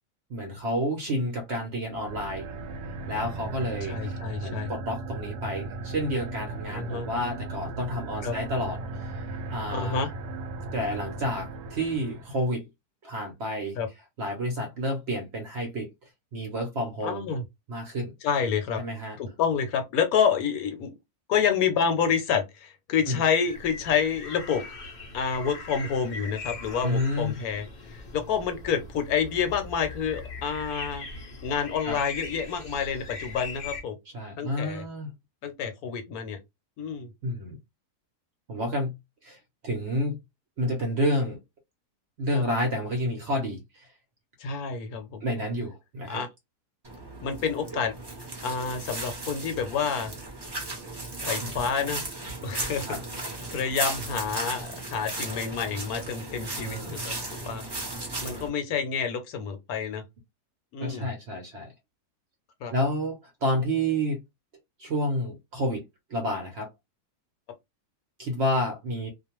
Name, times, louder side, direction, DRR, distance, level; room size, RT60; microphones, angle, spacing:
voice 1, 0.3-2.5 3.1-10.0 10.7-12.7 13.0-13.8 14.2-15.9 16.3-17.2 17.7-18.1 18.8-19.2 23.1-23.2 26.8-27.3 31.8-32.0 34.1-35.1 37.2-37.6 38.5-38.9 39.2-39.4 39.6-40.2 40.6-41.4 42.2-43.9 45.2-46.2 51.4-51.5 52.9-53.0 56.6-56.9 60.8-61.7 62.7-64.2 64.8-65.8 66.1-66.7 68.2-69.1, equal, 55° right, 0.8 m, -30 dB
sound 1, 2.0-12.5, right 2 dB, 80° right, 1.1 m, -37 dB
voice 2, 3.9-4.7 6.7-7.1 8.2-8.4 9.7-10.1 13.7-13.9 17.0-17.4 18.2-18.8 19.2-21.0 21.3-24.6 25.1-31.0 31.4-34.0 34.4-34.8 35.4-36.4 36.8-37.1 42.3-42.4 44.4-45.2 46.1-46.3 47.2-47.9 48.4-50.1 51.2-52.0 52.4-57.6 58.2-60.0 60.7-61.1 62.6-62.7, left 6 dB, 75° left, 1.0 m, -28 dB
sound 2, 23.4-33.8, left 3 dB, 55° left, 0.5 m, -40 dB
sound 3, 46.8-58.5, right 2 dB, 25° right, 0.6 m, -36 dB
2.5 x 2.2 x 2.9 m
omnidirectional pair, 1.7 m